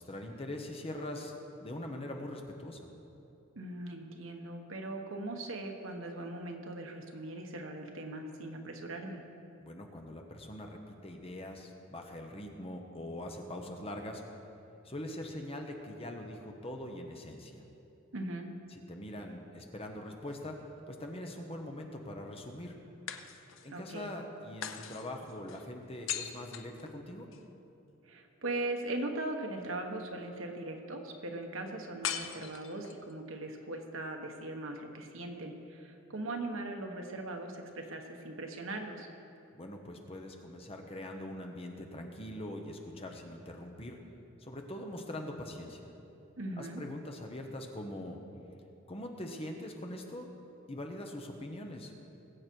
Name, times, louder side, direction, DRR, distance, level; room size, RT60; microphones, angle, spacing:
voice 1, 0.0-1.3 1.6-2.9 9.6-14.2 14.8-17.6 18.7-20.6 20.9-22.8 23.6-27.3 39.5-44.0 44.4-45.9 46.6-48.2 48.9-50.3 50.7-51.9, left 1 dB, 30° left, 2 dB, 1.2 m, -42 dB
voice 2, 3.5-9.2 18.1-18.5 23.7-24.1 28.0-39.1 46.4-46.8, right 2 dB, 70° right, 3 dB, 1.3 m, -39 dB
sound 1, 20.0-21.0 23.1-23.8 24.6-27.5 32.0-33.1, left 9 dB, 65° left, 0.7 m, -41 dB
20.5 x 8.3 x 4.7 m, 2.8 s
head